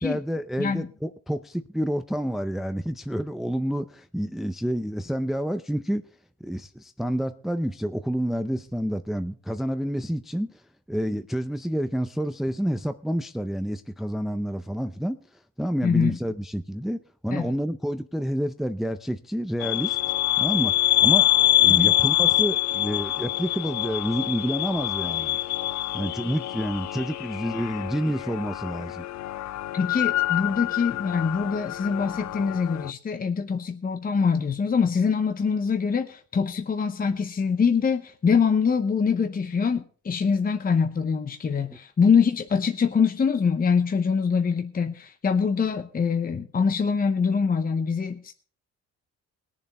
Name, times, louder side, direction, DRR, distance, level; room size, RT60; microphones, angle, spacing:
voice 1, 0.0-6.0 6.4-10.6 10.9-15.2 15.6-20.0 20.4-21.3 21.6-25.4 25.9-29.1, equal, ahead, 0.5 m, -29 dB
voice 2, 15.8-16.2 17.3-17.5 21.7-21.9 29.7-48.3, left 6 dB, 30° left, 0.8 m, -24 dB
sound 1, 19.6-32.9, left 13 dB, 65° left, 0.5 m, -25 dB
20.0 x 7.2 x 4.1 m
cardioid pair, 90°, 30 cm